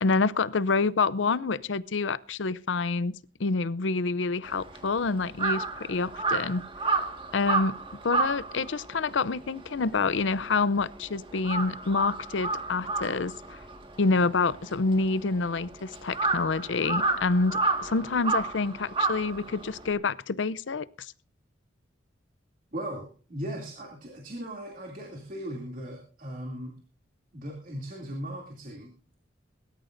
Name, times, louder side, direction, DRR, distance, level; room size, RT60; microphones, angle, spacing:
voice 1, 0.0-3.1 3.4-6.6 7.3-7.7 8.0-13.6 14.0-21.1, left 4 dB, 80° left, 0.6 m, -27 dB
Crow, 4.4-11.0 11.3-19.9, right 3 dB, 25° right, 1.7 m, -31 dB
voice 2, 22.7-26.7 27.3-28.9, right 1 dB, 45° right, 2.8 m, -38 dB
22.5 x 13.0 x 2.6 m
head